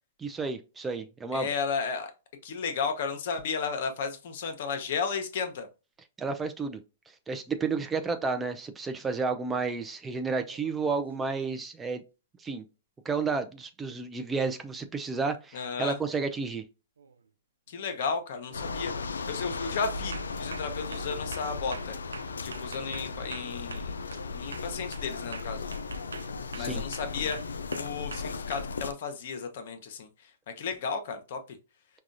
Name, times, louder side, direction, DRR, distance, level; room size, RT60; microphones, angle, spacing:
voice 1, 0.2-1.5 6.2-6.8 7.3-12.0 12.4-12.6 13.0-16.6 26.5-26.8, right 4 dB, 15° right, 0.5 m, -31 dB
voice 2, 1.3-2.1 2.4-5.7 15.5-16.0 17.7-22.0 22.4-24.0 24.3-25.7 26.5-27.4 27.7-30.1 30.6-31.6, left 5 dB, 60° left, 0.9 m, -33 dB
sound 1, 10.4-11.1 15.3-15.4 17.0-17.3 17.7-18.0 18.5-18.9 19.3-19.5 20.1-24.3 24.5-28.6, right 5 dB, 90° right, 0.4 m, -45 dB
sound 2, 18.5-28.9, left 4 dB, 90° left, 0.3 m, -36 dB
4.7 x 2.3 x 2.6 m
hypercardioid pair, 125°, 0 cm